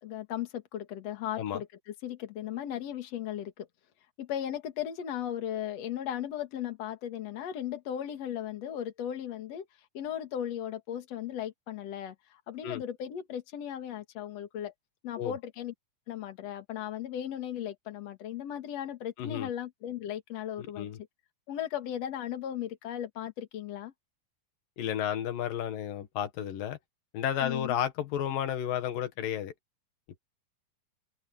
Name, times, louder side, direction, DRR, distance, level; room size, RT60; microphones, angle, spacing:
voice 1, 0.0-3.7 4.2-9.6 9.9-14.7 15.0-15.7 16.1-20.9 21.5-23.9 27.4-27.8, left 10 dB, 55° left, 2.8 m, -36 dB
voice 2, 19.2-19.5 20.6-21.0 24.8-26.8 27.1-29.5, left 10 dB, 90° left, 3.2 m, -32 dB
omnidirectional pair, 3.8 m